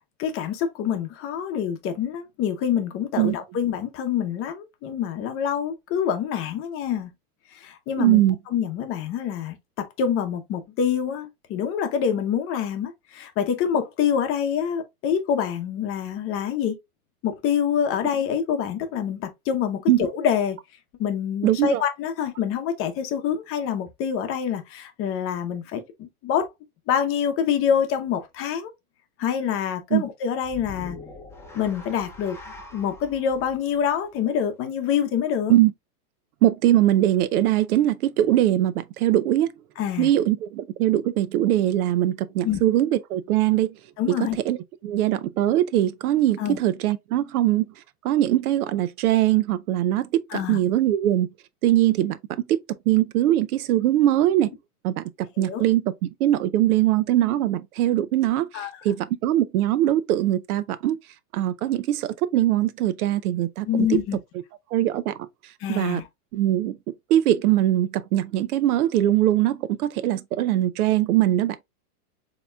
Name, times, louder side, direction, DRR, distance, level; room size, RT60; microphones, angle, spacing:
voice 1, 0.2-7.1 7.5-8.2 8.5-16.8 17.2-20.6 21.0-26.5 26.9-28.7 29.2-31.0 31.5-32.4 32.7-35.5 39.8-40.1 42.4-42.6 44.0-44.4 46.4-46.6 50.3-50.6 55.4-55.6 58.5-58.8 63.6-64.2 65.6-66.0, left 8 dB, 30° left, 0.8 m, -26 dB
voice 2, 8.0-8.4 19.9-20.1 21.4-21.8 29.9-30.0 35.5-35.7 36.4-39.5 40.0-43.8 44.2-44.6 44.8-47.7 48.0-51.3 51.6-54.5 54.8-55.0 55.4-55.9 56.2-61.0 61.3-64.0 64.7-65.3 65.7-66.0 66.3-66.8 67.1-71.6, right 13 dB, 75° right, 0.6 m, -21 dB
sound 1, 30.4-34.8, left 2 dB, 5° left, 0.8 m, -44 dB
6.7 x 3.0 x 2.3 m
supercardioid pair, 140°, 45 cm